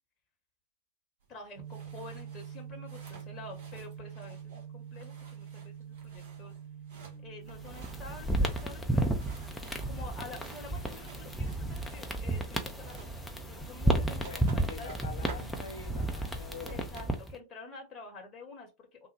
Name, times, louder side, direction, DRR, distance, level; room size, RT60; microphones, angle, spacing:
sound 1, 1.2-17.3, right 4 dB, 50° right, 1.1 m, -54 dB
voice 1, 1.3-6.6 7.2-9.1 9.9-14.9 16.0-19.1, left 3 dB, 30° left, 1.0 m, -49 dB
sound 2, 1.6-17.2, right 8 dB, 70° right, 1.3 m, -48 dB
voice 2, 7.0-7.6 14.2-16.9, left 5 dB, 60° left, 0.6 m, -46 dB
sound 3, 7.5-17.3, right 1 dB, 5° left, 0.6 m, -32 dB
3.3 x 2.1 x 3.3 m
figure-of-eight pair, 90°, 0 cm